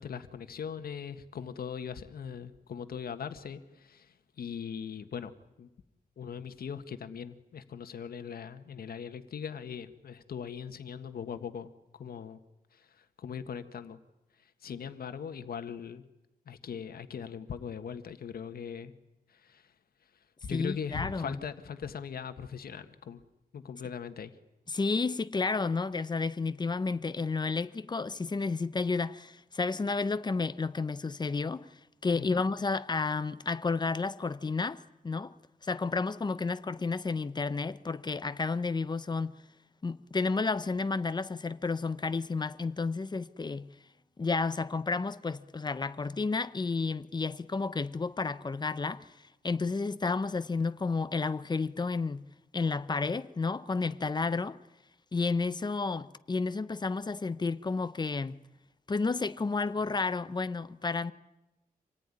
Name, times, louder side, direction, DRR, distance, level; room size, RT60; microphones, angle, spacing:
voice 1, 0.0-5.3 5.6-5.7 6.2-12.4 12.7-14.0 14.6-16.0 16.4-18.9 19.3-19.7 20.4-23.2 23.5-24.3 32.1-32.4, left 7 dB, 85° left, 1.6 m, -40 dB
voice 2, 20.5-21.4 24.7-31.7 32.0-35.3 35.6-39.3 39.8-43.7 44.2-49.1 49.4-52.3 52.5-54.6 55.1-58.4 58.9-61.1, left 4 dB, 30° left, 0.9 m, -31 dB
27.0 x 18.5 x 9.9 m
wide cardioid pair, 140°, 15 cm